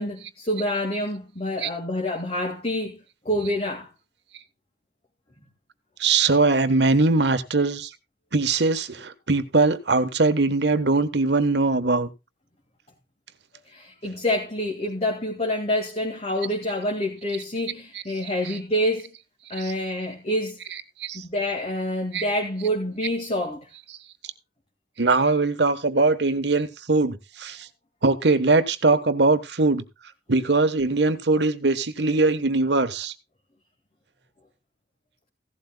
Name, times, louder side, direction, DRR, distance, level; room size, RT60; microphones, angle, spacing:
voice 1, 0.0-3.9 13.7-19.1 19.5-20.6 21.1-23.7, left 1 dB, 35° left, 2.1 m, -27 dB
voice 2, 6.0-7.9 8.3-12.1 18.4-18.6 19.6-19.7 20.7-21.2 22.1-22.3 23.9-24.0 25.0-27.7 28.0-29.8 30.3-33.1, right 3 dB, 70° right, 1.3 m, -21 dB
16.0 x 12.0 x 2.3 m
head